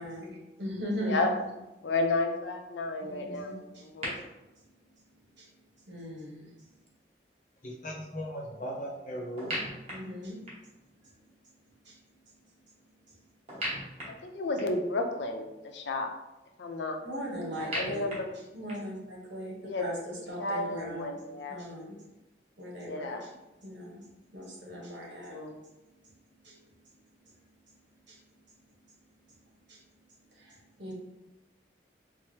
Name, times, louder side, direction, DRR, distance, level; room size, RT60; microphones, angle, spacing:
voice 1, 0.0-1.5 3.0-3.8 5.4-5.5 5.9-6.5 9.9-10.4 11.8-12.0 13.1-13.2 17.0-18.1 18.5-21.2 21.5-22.0 22.6-23.3 23.6-25.4 26.0-26.1 26.4-26.6 28.1-28.2 29.7-29.8 30.3-30.9, equal, 85° right, -2 dB, 1.1 m, -39 dB
voice 2, 1.8-4.2 14.2-16.1 16.6-17.0 17.7-18.3 19.6-19.9 20.1-21.6 22.7-23.2 25.2-25.6, left 2 dB, 80° left, 4 dB, 0.5 m, -32 dB
sound 1, 4.0-4.1 9.4-10.8 13.5-14.9 17.6-19.0, equal, 35° right, 1.0 m, -38 dB
voice 3, 7.6-9.7, equal, 45° left, -3 dB, 0.6 m, -38 dB
4.5 x 2.0 x 3.1 m, 1.0 s
head